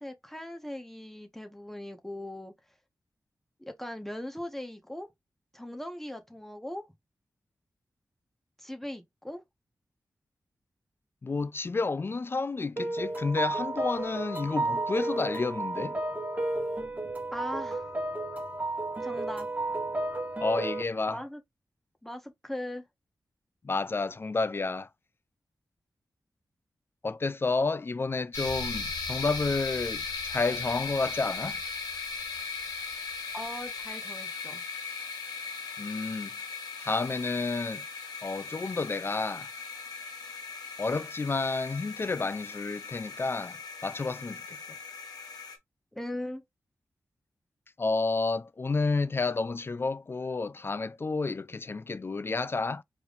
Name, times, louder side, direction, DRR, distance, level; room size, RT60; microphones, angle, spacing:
voice 1, 0.0-2.5 3.6-5.1 5.5-6.8 8.6-9.4 17.3-17.9 19.0-19.5 21.1-21.4 22.0-22.8 33.3-34.6 45.9-46.4, left 1 dB, 5° left, 1.3 m, -39 dB
voice 2, 11.2-16.0 20.4-21.2 23.6-24.9 27.0-31.6 35.8-36.3 36.8-37.8 38.2-39.5 40.8-44.6 47.8-52.8, left 3 dB, 35° left, 0.3 m, -30 dB
sound 1, 12.8-20.8, right 2 dB, 25° right, 1.5 m, -32 dB
sound 2, 28.3-45.6, left 4 dB, 90° left, 1.1 m, -38 dB
4.6 x 3.5 x 2.5 m
cardioid pair, 65°, 7 cm